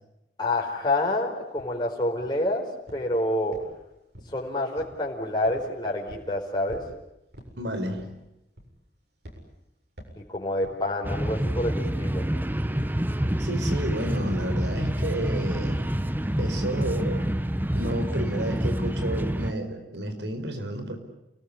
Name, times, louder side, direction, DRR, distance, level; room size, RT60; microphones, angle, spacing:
voice 1, 0.4-3.6 4.3-6.8 10.2-12.2, left 1 dB, 25° left, -1 dB, 4.7 m, -28 dB
sound 1, 1.6-1.7 2.2-2.5 2.9-3.1 3.5-4.4 4.8-5.0 5.4-5.7 6.1-6.3 6.7-6.9 7.3-7.6 7.9-8.2 8.6-8.9 9.2-9.4 10.0-10.2 10.6-10.8 11.3-11.5, equal, 65° right, 7.5 m, -46 dB
voice 2, 7.6-8.1 13.4-15.9 16.4-17.3 17.7-21.0, right 1 dB, 90° right, 7 dB, 5.2 m, -31 dB
sound 2, 11.0-19.5, equal, 10° right, 1.0 m, -27 dB
29.5 x 20.0 x 9.9 m, 0.89 s
head